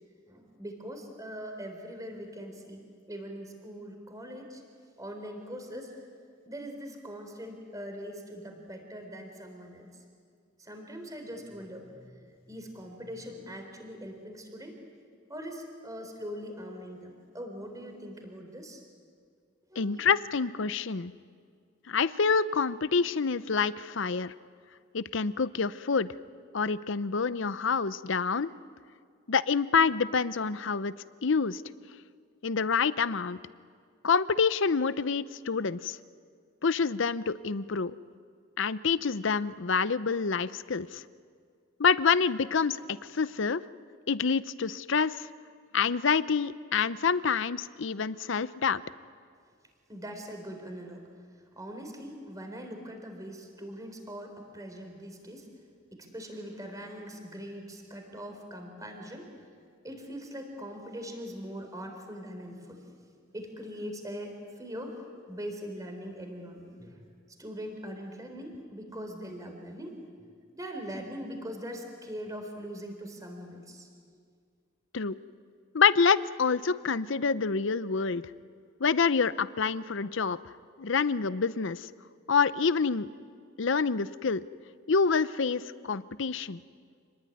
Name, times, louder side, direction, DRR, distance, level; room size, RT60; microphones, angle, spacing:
voice 1, 0.3-2.8 3.1-4.6 5.0-5.9 6.5-9.9 10.6-12.2 12.5-14.8 15.3-18.8 19.7-20.0 49.9-51.1 51.6-55.5 55.9-59.3 59.8-64.3 64.6-65.0 65.3-67.0 67.4-70.0 70.5-73.9, equal, 15° right, 4 dB, 4.0 m, -41 dB
voice 2, 19.8-21.1 21.9-24.3 24.9-26.1 26.5-28.5 29.3-30.9 31.2-31.6 32.4-33.4 34.0-36.0 36.6-38.0 38.6-41.0 41.8-42.8 43.1-43.6 44.1-45.3 45.7-48.8 74.9-75.2 75.7-78.2 78.8-80.4 80.8-81.9 82.3-83.1 83.6-84.4 84.9-86.6, left 5 dB, 60° left, 16 dB, 0.7 m, -27 dB
28.0 x 20.0 x 9.8 m, 2.1 s
head